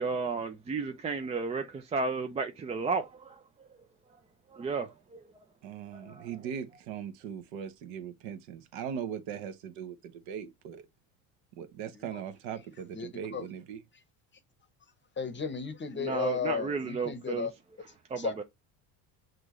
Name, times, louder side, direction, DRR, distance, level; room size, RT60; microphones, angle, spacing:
voice 1, 0.0-3.4 4.5-5.2 5.9-6.3 16.0-17.5 18.1-18.4, right 4 dB, 15° right, 0.3 m, -33 dB
voice 2, 5.6-10.8 11.6-13.8, right 8 dB, 65° right, 1.0 m, -39 dB
voice 3, 12.9-13.5 15.2-17.5 17.9-18.4, left 6 dB, 25° left, 0.9 m, -35 dB
6.0 x 2.6 x 3.0 m
hypercardioid pair, 85°, 49 cm